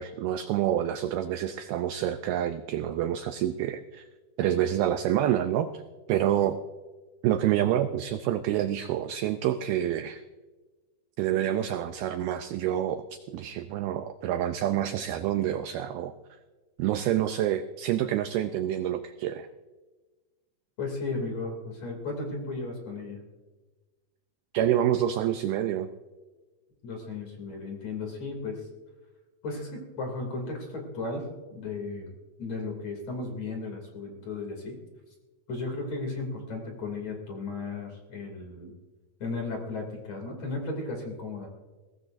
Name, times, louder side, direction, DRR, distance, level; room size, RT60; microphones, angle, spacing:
voice 1, 0.0-4.1 4.4-5.8 6.1-6.6 7.2-10.2 11.2-16.1 16.8-19.5 24.5-25.9, right 11 dB, 80° right, 8 dB, 2.2 m, -27 dB
voice 2, 20.8-23.2 26.8-28.6 29.4-32.1 32.4-34.8 35.5-38.7 39.2-41.5, left 3 dB, 40° left, 1 dB, 3.4 m, -35 dB
22.0 x 17.5 x 2.6 m, 1.3 s
omnidirectional pair, 4.9 m